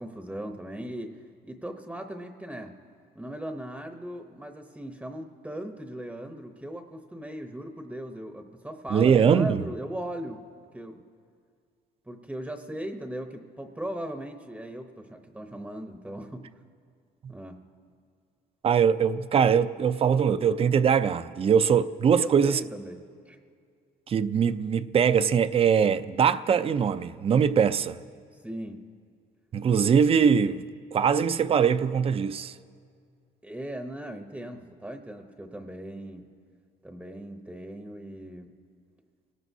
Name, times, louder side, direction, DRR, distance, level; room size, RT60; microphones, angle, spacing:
voice 1, 0.0-2.8 3.1-10.4 10.7-11.0 12.1-16.4 17.3-17.6 22.1-23.0 23.3-23.4 28.3-28.8 33.4-36.3 36.8-38.5, right 1 dB, 5° right, 0.8 m, -38 dB
voice 2, 8.9-9.6 17.2-17.3 18.6-22.6 24.1-28.0 29.5-32.5, right 7 dB, 35° right, 0.5 m, -22 dB
27.5 x 18.5 x 2.7 m
cardioid pair, 110°, 17 cm